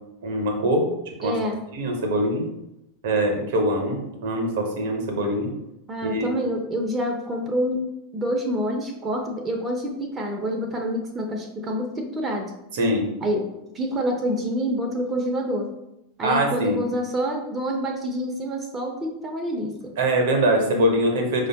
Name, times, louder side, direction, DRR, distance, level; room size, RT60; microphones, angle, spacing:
voice 1, 0.2-0.9 1.2-1.3 1.7-2.5 3.0-5.5 6.0-6.3 12.8-13.1 16.2-16.8 20.0-21.5, right 1 dB, 60° right, 3 dB, 0.7 m, -23 dB
voice 2, 1.2-1.6 5.9-7.8 8.1-12.5 13.2-13.5 13.7-15.7 16.2-19.9, equal, 20° right, 2 dB, 0.6 m, -27 dB
4.8 x 2.2 x 2.7 m, 0.87 s
figure-of-eight pair, 90°, 0 cm